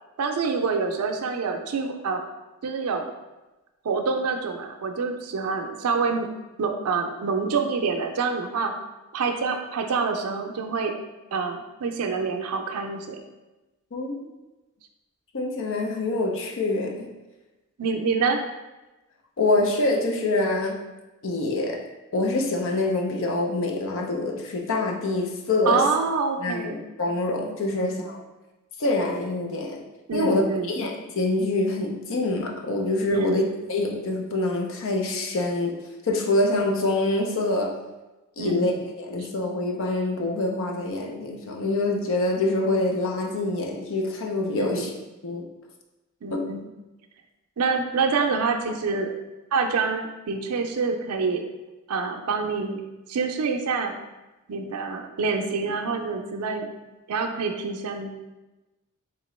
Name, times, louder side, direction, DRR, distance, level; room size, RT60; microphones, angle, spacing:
voice 1, 0.2-2.2 2.6-3.1 3.8-6.3 6.6-8.7 9.1-10.9 11.3-13.2 17.8-18.4 25.7-26.8 27.7-28.0 30.1-30.8 33.1-33.4 38.4-38.7 39.2-39.3 44.5-44.9 46.2-46.6 47.6-49.1 49.5-51.4 51.9-52.8 53.1-53.9 54.5-56.7 57.1-58.1, right 4 dB, 85° right, 4 dB, 0.5 m, -26 dB
voice 2, 13.9-14.3 15.3-17.1 19.4-20.8 21.2-21.9 22.1-25.9 26.4-28.2 28.8-29.8 30.1-30.4 30.7-33.4 33.7-37.8 38.4-38.7 39.0-44.9 45.2-45.5 46.3-46.5, left 2 dB, 60° left, 2 dB, 0.6 m, -25 dB
3.7 x 2.9 x 3.1 m, 1.1 s
head